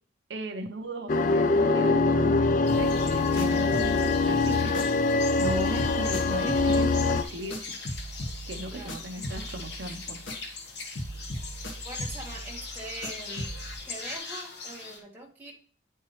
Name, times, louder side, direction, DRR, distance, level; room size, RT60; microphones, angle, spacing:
voice 1, 0.3-4.9 5.4-7.6 8.5-10.2, right 1 dB, 70° right, 4 dB, 0.8 m, -36 dB
sound 1, 1.1-7.2, left 3 dB, 40° left, 0.4 m, -24 dB
sound 2, 2.7-5.2 5.4-10.7 11.0-13.8, equal, 80° left, 1.2 m, -39 dB
sound 3, 2.7-15.0, left 4 dB, 60° left, 1.3 m, -41 dB
voice 2, 8.7-9.0 11.8-13.5 13.9-15.5, right 1 dB, 10° right, -3 dB, 1.6 m, -42 dB
9.5 x 4.5 x 3.2 m, 0.42 s
head